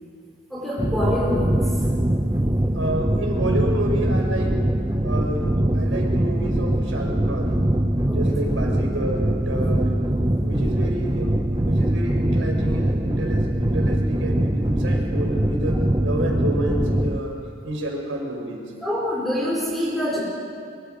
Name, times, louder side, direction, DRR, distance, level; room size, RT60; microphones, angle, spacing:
voice 1, 0.5-1.7 8.0-8.2 18.8-20.2, left 1 dB, ahead, -6 dB, 4.9 m, -25 dB
sound 1, 0.8-17.2, right 1 dB, 20° right, 0.8 m, -22 dB
voice 2, 2.7-4.7 5.0-7.6 8.1-10.0 10.4-17.3 17.6-18.7, right 1 dB, 80° right, 0 dB, 5.2 m, -29 dB
25.5 x 24.0 x 5.2 m, 2.3 s
head